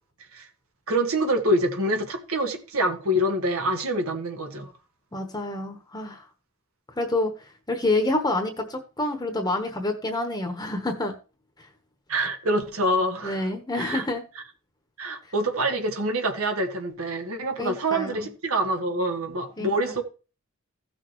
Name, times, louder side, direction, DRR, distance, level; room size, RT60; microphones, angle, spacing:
voice 1, 0.9-4.7 12.1-13.5 13.7-14.1 15.0-20.0, right 1 dB, 85° right, 1.8 m, -26 dB
voice 2, 5.1-6.2 7.0-7.3 7.7-11.1 13.2-14.2 17.6-18.3 19.6-19.7, left 2 dB, 20° left, 1.1 m, -27 dB
15.5 x 6.2 x 3.1 m
head